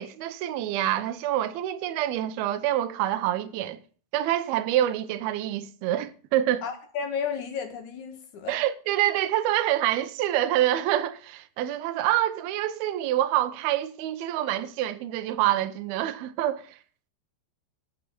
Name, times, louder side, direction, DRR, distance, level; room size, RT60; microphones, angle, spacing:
voice 1, 0.0-3.8 4.1-6.6 8.5-16.8, right 13 dB, 75° right, 2.6 m, -26 dB
voice 2, 6.6-8.6, left 6 dB, 55° left, 2.6 m, -33 dB
13.0 x 5.6 x 8.2 m
omnidirectional pair, 4.8 m